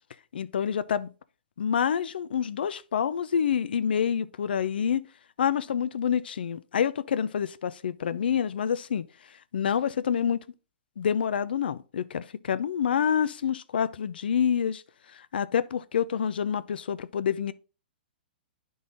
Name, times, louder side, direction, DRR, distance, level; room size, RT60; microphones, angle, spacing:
voice 1, 0.3-1.1 1.6-5.0 5.4-9.1 9.5-10.4 11.0-14.8 15.1-17.5, left 8 dB, 75° left, 0.5 m, -27 dB
10.5 x 3.9 x 3.7 m
hypercardioid pair, 125°, 5 cm